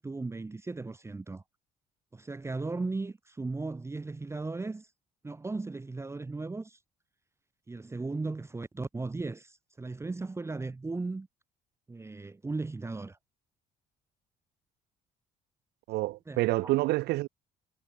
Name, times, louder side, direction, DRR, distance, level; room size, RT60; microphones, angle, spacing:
voice 1, 0.0-1.4 2.1-4.9 5.2-6.8 7.7-11.3 11.9-13.2 16.3-16.7, right 3 dB, 15° right, 1.3 m, -36 dB
voice 2, 15.9-17.3, right 19 dB, 75° right, 0.5 m, -28 dB
cardioid pair, 110°, 17 cm